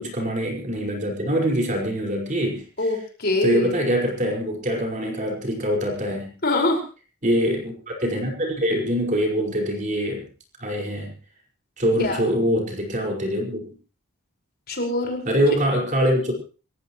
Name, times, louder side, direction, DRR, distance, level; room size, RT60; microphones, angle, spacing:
voice 1, 0.0-3.0 3.4-6.3 7.2-10.3 10.6-11.2 11.8-13.6 15.2-16.3, equal, 35° right, 0 dB, 5.4 m, -24 dB
voice 2, 2.8-3.8 6.4-6.8 12.0-12.2 14.7-15.2, left 2 dB, 45° left, 1 dB, 5.2 m, -23 dB
28.5 x 15.0 x 3.1 m, 0.37 s
head